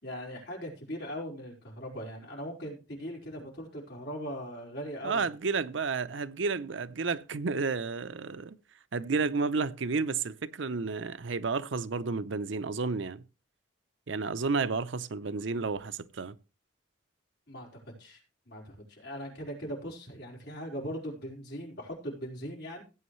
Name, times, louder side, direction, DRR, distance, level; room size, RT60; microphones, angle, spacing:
voice 1, 0.0-5.3 17.5-17.7 18.0-18.2 18.5-22.8, equal, 60° left, 4.8 m, -40 dB
voice 2, 5.0-8.6 8.9-13.2 14.1-16.3, right 4 dB, 75° right, 0.6 m, -31 dB
16.5 x 8.6 x 3.2 m
head